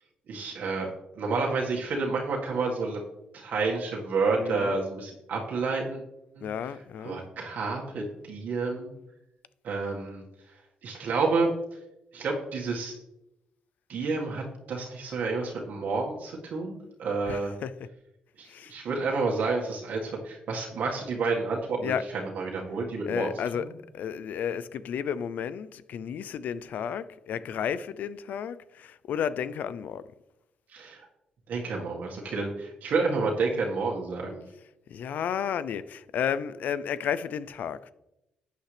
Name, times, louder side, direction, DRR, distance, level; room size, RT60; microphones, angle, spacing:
voice 1, 0.3-0.9 1.2-3.0 3.3-6.0 6.4-6.5 7.0-8.9 9.6-10.2 10.8-11.5 12.1-12.9 13.9-17.5 18.4-21.9 22.3-23.7 30.7-31.1 31.5-34.4, right 4 dB, 70° right, 1.8 m, -29 dB
voice 2, 4.4-4.8 6.4-7.2 17.3-17.9 18.5-18.7 21.8-22.1 23.1-30.0 34.9-37.8, left 8 dB, 70° left, 0.5 m, -32 dB
11.5 x 8.4 x 3.4 m
cardioid pair, 95°, 3 cm